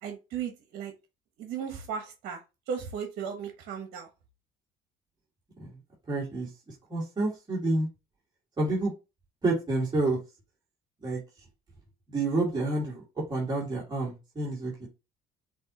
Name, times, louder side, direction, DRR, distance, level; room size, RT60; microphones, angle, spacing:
voice 1, 0.0-0.9 1.4-4.1, right 7 dB, 75° right, 4 dB, 1.0 m, -36 dB
voice 2, 6.1-6.5 6.9-7.9 8.6-8.9 9.4-10.2 11.0-11.2 12.1-13.0 13.3-14.9, right 2 dB, 25° right, -5 dB, 2.5 m, -28 dB
6.1 x 2.8 x 2.8 m, 0.27 s
cardioid pair, 95°, 16 cm